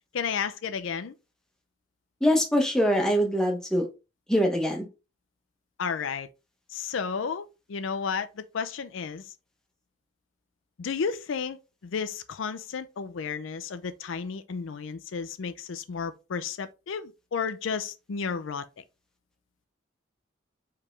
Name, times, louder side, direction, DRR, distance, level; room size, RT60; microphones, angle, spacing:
voice 1, 0.1-1.1 5.8-6.3 6.7-9.2 10.8-18.8, left 6 dB, 80° left, 0.5 m, -32 dB
voice 2, 2.2-3.9 4.3-4.9, equal, 5° left, 0.8 m, -23 dB
4.7 x 3.4 x 3.2 m
head